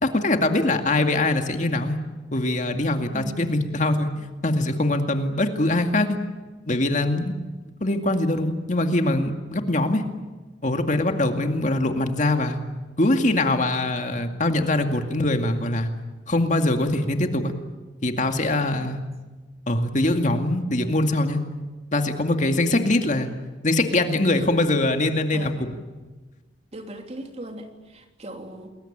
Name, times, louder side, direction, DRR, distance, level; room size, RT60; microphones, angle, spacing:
voice 1, 0.0-2.0 2.3-6.2 6.7-7.3 7.8-10.0 10.6-12.6 13.0-15.9 16.3-17.5 18.0-19.0 19.7-21.4 21.9-23.3 23.6-25.5, left 2 dB, 45° left, 6 dB, 2.2 m, -23 dB
voice 2, 3.1-3.6 18.7-18.9 25.3-25.6 26.7-28.7, right 1 dB, 35° right, 4 dB, 3.1 m, -38 dB
28.5 x 21.5 x 8.8 m, 1.3 s
head